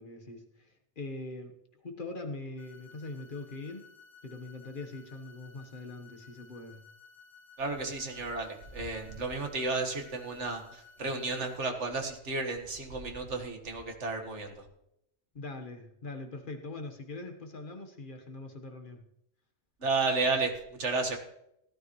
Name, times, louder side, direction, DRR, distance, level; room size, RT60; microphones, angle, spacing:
voice 1, 0.0-3.9 4.2-6.8 15.3-19.1, left 2 dB, 45° left, 4 dB, 1.4 m, -42 dB
sound 1, 2.6-11.6, left 5 dB, 55° right, 5.5 m, -56 dB
voice 2, 7.6-14.7 19.8-21.2, right 3 dB, 80° right, 3 dB, 1.9 m, -32 dB
16.5 x 12.5 x 3.1 m, 0.77 s
omnidirectional pair, 1.2 m